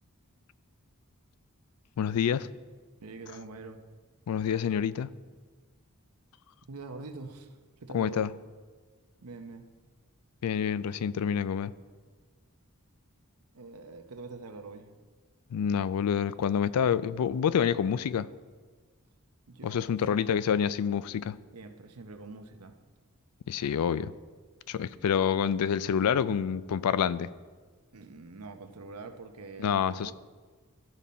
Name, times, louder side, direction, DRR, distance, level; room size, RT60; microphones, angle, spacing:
voice 1, 2.0-2.5 4.3-5.1 7.9-8.3 10.4-11.7 15.5-18.3 19.6-21.4 23.5-24.1 24.7-27.3 29.6-30.1, left 8 dB, 90° left, 17 dB, 0.3 m, -27 dB
voice 2, 3.0-3.8 6.7-7.5 7.8-8.3 9.2-9.6 13.5-14.9 19.5-20.4 21.5-22.7 27.9-30.1, right 3 dB, 85° right, 7 dB, 0.8 m, -44 dB
13.5 x 5.4 x 4.2 m, 1.4 s
head